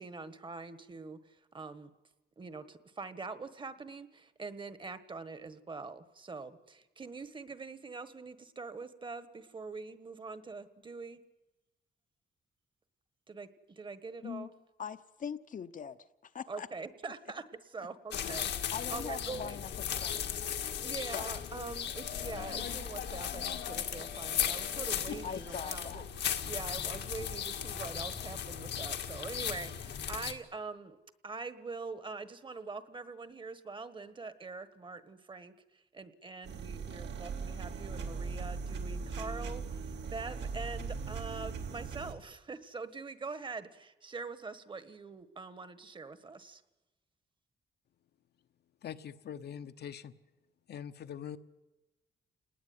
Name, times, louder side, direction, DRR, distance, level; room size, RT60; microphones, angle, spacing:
voice 1, 0.0-1.9 2.4-11.2 13.3-14.5 16.5-17.4 17.7-18.5 18.9-19.7 20.3-20.4 20.8-26.0 26.4-31.0 31.2-46.6, right 4 dB, 30° right, 1.4 m, -44 dB
voice 2, 14.8-16.7 18.7-20.4 21.1-21.3 25.2-26.0, left 7 dB, 50° left, 0.9 m, -42 dB
sound 1, 18.1-30.3, left 9 dB, 90° left, 2.0 m, -36 dB
sound 2, 36.4-42.1, right 4 dB, 80° right, 3.2 m, -39 dB
voice 3, 48.8-50.1 50.7-51.4, left 9 dB, 70° left, 1.1 m, -43 dB
29.0 x 19.5 x 9.5 m
wide cardioid pair, 145°, 18 cm